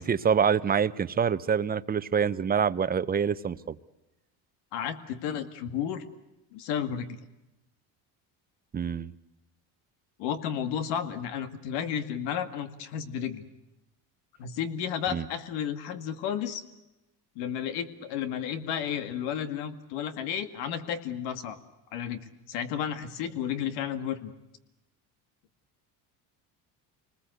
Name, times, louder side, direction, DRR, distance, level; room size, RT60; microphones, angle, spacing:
voice 1, 0.0-3.7 8.7-9.1 15.1-15.2, right 7 dB, 20° right, 14 dB, 0.8 m, -26 dB
voice 2, 4.7-6.0 6.5-7.2 10.2-13.5 14.4-16.6 17.4-21.6 21.9-24.3, left 8 dB, 85° left, 9 dB, 2.2 m, -32 dB
27.0 x 20.0 x 8.0 m, 0.97 s
cardioid pair, 125°, 41 cm